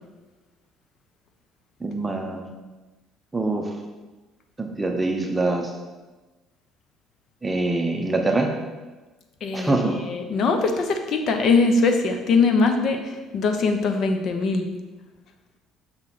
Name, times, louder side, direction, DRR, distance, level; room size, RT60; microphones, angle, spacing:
voice 1, 1.8-2.5 3.3-3.7 4.6-5.7 7.4-8.5 9.5-10.0, right 2 dB, 15° right, 3 dB, 0.8 m, -24 dB
voice 2, 9.4-14.7, left 4 dB, 55° left, 6 dB, 0.8 m, -22 dB
6.0 x 3.8 x 5.9 m, 1.2 s
cardioid pair, 105°, 0 cm